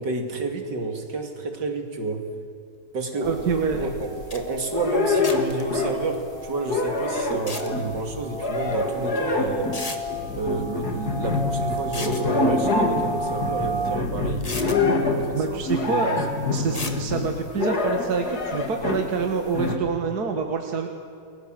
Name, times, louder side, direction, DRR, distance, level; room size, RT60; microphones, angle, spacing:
voice 1, 0.0-2.3 2.9-3.3 3.8-3.9 4.3-9.8 10.3-14.4 15.0-16.2 16.5-17.0, right 3 dB, 85° right, 4 dB, 3.1 m, -30 dB
sound 1, 3.1-14.0, right 2 dB, 20° right, 1.1 m, -34 dB
sound 2, 3.2-4.3 4.7-6.2 6.5-19.1 19.5-19.8, left 3 dB, 65° left, 3.1 m, -26 dB
voice 2, 3.2-3.9 15.3-16.1 16.5-20.9, right 5 dB, 65° right, 4 dB, 2.2 m, -26 dB
sound 3, 4.0-4.1 4.3-4.4 5.2-5.6 7.3-7.7 9.0-9.1 9.7-10.0 11.8-12.3 13.8-13.9 14.4-14.8 16.7-17.0, left 2 dB, 20° left, 1.7 m, -34 dB
29.0 x 21.5 x 7.7 m, 2.4 s
omnidirectional pair, 1.8 m